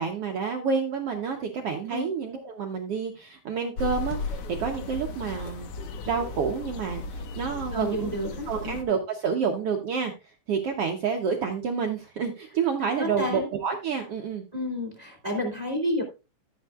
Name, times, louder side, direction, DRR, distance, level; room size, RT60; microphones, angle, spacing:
voice 1, 0.0-5.7 6.0-8.1 8.5-14.4, right 6 dB, 75° right, 3 dB, 1.4 m, -29 dB
sound 1, 3.8-8.8, left 3 dB, 85° left, 1.2 m, -36 dB
voice 2, 7.7-8.8 13.0-13.5 14.5-16.0, left 1 dB, 15° right, 1 dB, 2.3 m, -30 dB
14.0 x 8.0 x 2.4 m, 0.28 s
omnidirectional pair, 4.0 m